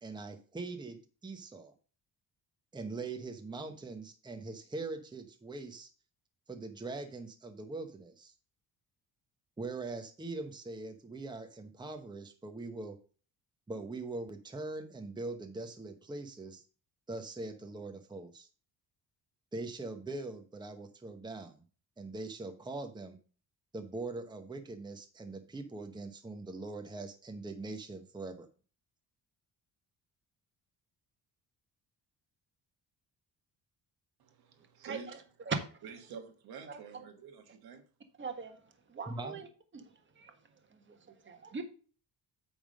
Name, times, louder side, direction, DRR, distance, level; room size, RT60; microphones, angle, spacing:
voice 1, 0.0-1.7 2.7-5.9 6.5-8.3 9.6-13.0 13.7-16.6 17.1-18.5 19.5-21.6 22.0-23.2 23.7-28.5 39.1-39.4, right 3 dB, 10° right, 0.9 m, -42 dB
voice 2, 34.2-35.1 35.8-37.8, right 6 dB, 75° right, 1.5 m, -48 dB
voice 3, 38.2-38.6 38.9-39.5 39.7-40.4 40.7-41.6, right 4 dB, 30° right, 1.4 m, -40 dB
8.6 x 3.6 x 6.3 m
cardioid pair, 120°, 38 cm